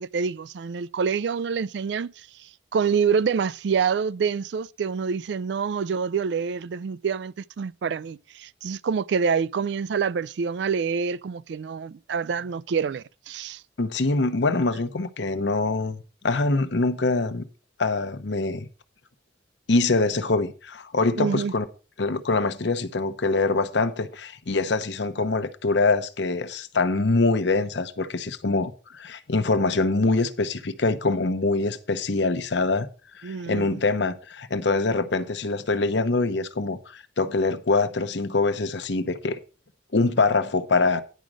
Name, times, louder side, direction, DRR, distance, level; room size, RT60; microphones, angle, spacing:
voice 1, 0.0-2.1 2.7-13.6 21.2-21.5 33.2-33.8, right 6 dB, 70° right, 0.4 m, -26 dB
voice 2, 13.8-17.4 17.8-18.7 19.7-21.7 22.0-32.9 33.2-39.4 39.9-41.0, left 3 dB, 75° left, 0.9 m, -24 dB
10.0 x 5.2 x 6.1 m
head